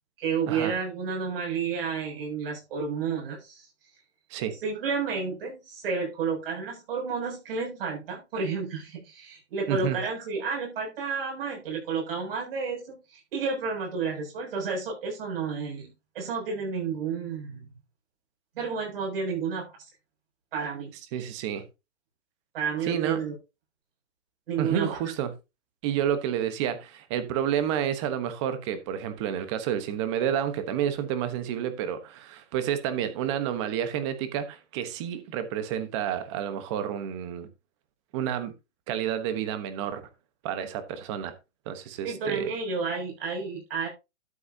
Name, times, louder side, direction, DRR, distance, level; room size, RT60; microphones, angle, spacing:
voice 1, 0.2-3.7 4.6-17.7 18.6-19.8 20.5-20.9 22.5-23.3 24.5-25.0 42.0-43.9, right 5 dB, 50° right, 7.1 m, -31 dB
voice 2, 9.7-10.0 21.1-21.6 22.8-23.2 24.6-25.3 25.8-37.5 38.1-38.5 38.9-40.0 40.4-41.3 41.7-42.5, right 9 dB, 25° right, 1.1 m, -30 dB
12.0 x 8.1 x 2.8 m
hypercardioid pair, 170°, 36 cm